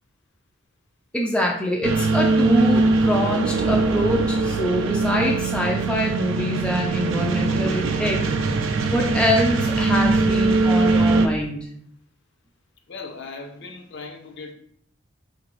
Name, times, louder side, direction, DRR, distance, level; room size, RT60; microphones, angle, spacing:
voice 1, 1.1-8.2 8.9-11.7, left 1 dB, 5° left, -1 dB, 0.3 m, -24 dB
sound 1, 1.8-11.3, right 3 dB, 70° right, 0.4 m, -21 dB
voice 2, 12.9-14.5, left 4 dB, 55° left, 3 dB, 0.5 m, -38 dB
3.8 x 2.5 x 3.0 m, 0.65 s
head